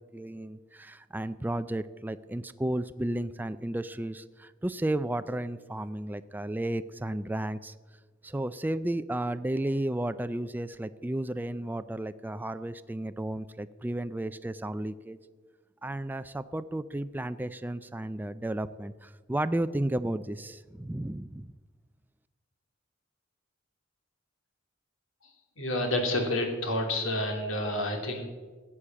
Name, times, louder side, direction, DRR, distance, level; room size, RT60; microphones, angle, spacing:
voice 1, 0.0-7.7 8.2-15.2 15.8-21.5, right 1 dB, 10° right, 12 dB, 0.4 m, -33 dB
voice 2, 25.6-28.3, left 1 dB, 90° left, 3 dB, 2.8 m, -29 dB
14.5 x 8.5 x 7.5 m, 1.4 s
head